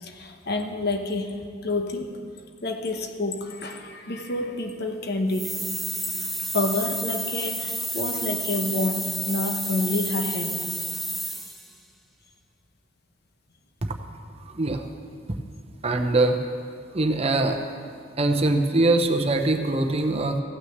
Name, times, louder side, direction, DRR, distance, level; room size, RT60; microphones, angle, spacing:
voice 1, 0.0-2.1 2.6-5.6 6.4-10.6, left 2 dB, 55° left, 4 dB, 1.1 m, -28 dB
sound 1, 5.3-11.7, equal, ahead, 0.6 m, -30 dB
voice 2, 14.5-14.8 15.8-16.4 16.9-17.6 18.2-20.4, right 2 dB, 35° right, 5 dB, 0.8 m, -22 dB
15.5 x 6.2 x 7.9 m, 2.2 s
head